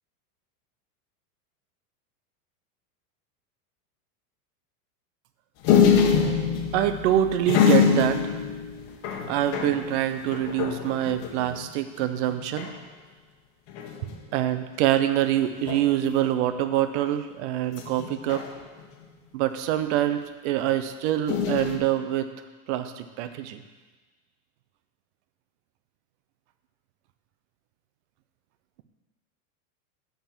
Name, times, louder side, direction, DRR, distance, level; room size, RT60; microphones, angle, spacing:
sound 1, 5.6-11.6 12.0-12.1 12.3-12.8 13.7-14.3 15.6-16.1 17.7-19.0 21.3-21.8, left 7 dB, 50° left, 1.2 m, -24 dB
voice 1, 6.7-8.4 9.3-12.7 14.3-18.4 19.3-22.3 22.7-23.6, right 12 dB, 50° right, 10 dB, 0.7 m, -25 dB
6.8 x 5.7 x 7.4 m, 1.3 s
supercardioid pair, 140°, 45 cm